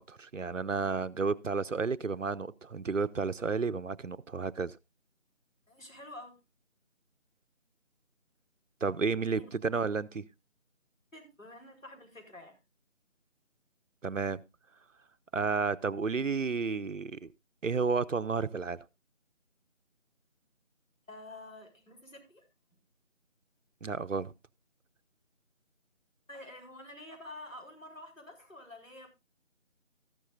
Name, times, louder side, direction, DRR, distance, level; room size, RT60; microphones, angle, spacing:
voice 1, 0.1-4.8 8.8-10.3 14.0-14.4 15.3-17.3 17.6-18.8 23.8-24.3, right 4 dB, 75° right, 0.8 m, -31 dB
voice 2, 5.7-6.4 9.3-9.5 11.1-12.6 21.1-22.5 26.3-29.1, left 1 dB, 85° left, 5.0 m, -48 dB
14.0 x 12.0 x 2.5 m
figure-of-eight pair, 165°, 38 cm